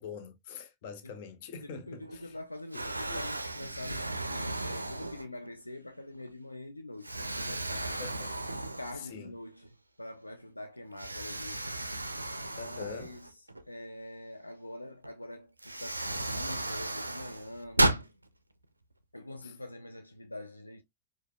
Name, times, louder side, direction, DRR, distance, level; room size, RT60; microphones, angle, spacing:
voice 1, 0.0-2.4 2.7-3.2 8.0-8.3 8.9-9.3 12.6-13.1 19.4-19.5, left 6 dB, 50° left, 0.7 m, -44 dB
voice 2, 1.6-8.1 8.8-11.7 12.6-13.3 13.7-17.9 19.1-20.8, left 1 dB, 85° left, 0.3 m, -45 dB
Explosion, 2.0-2.4 2.7-5.5 6.1-6.3 7.0-9.3 9.6-9.7 11.0-13.6 15.0-15.1 15.6-18.1, right 1 dB, 85° right, 0.4 m, -34 dB
4.8 x 2.2 x 2.2 m
figure-of-eight pair, 90°, 0 cm